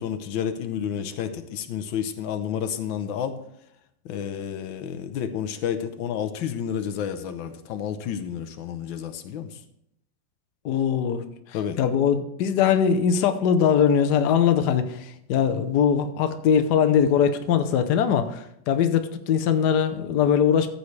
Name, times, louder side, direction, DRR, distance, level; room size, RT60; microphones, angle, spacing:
voice 1, 0.0-3.4 4.0-9.5 11.5-11.8, left 8 dB, 85° left, 9 dB, 1.5 m, -30 dB
voice 2, 10.6-11.2 11.8-20.7, left 8 dB, 65° left, 8 dB, 1.3 m, -21 dB
14.0 x 8.3 x 3.2 m, 0.76 s
omnidirectional pair, 2.1 m